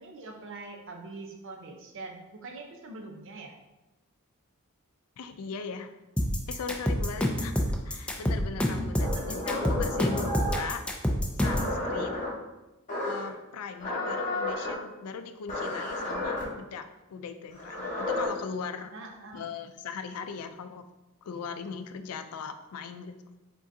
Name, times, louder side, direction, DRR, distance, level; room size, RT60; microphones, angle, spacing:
voice 1, 0.0-3.5 9.0-9.5 18.9-19.5, right 2 dB, 60° right, 2 dB, 0.7 m, -43 dB
voice 2, 5.2-5.9 6.5-10.8 11.4-12.3 13.0-18.9 19.3-20.8 21.2-23.3, left 5 dB, 75° left, 8 dB, 0.4 m, -39 dB
sound 1, 6.2-11.7, equal, 5° left, 0.4 m, -27 dB
sound 2, 9.0-10.7 11.4-12.3 12.9-13.3 13.8-14.7 15.5-16.4 17.5-18.3, left 1 dB, 35° left, 1.4 m, -32 dB
4.9 x 3.7 x 2.7 m, 1.0 s
head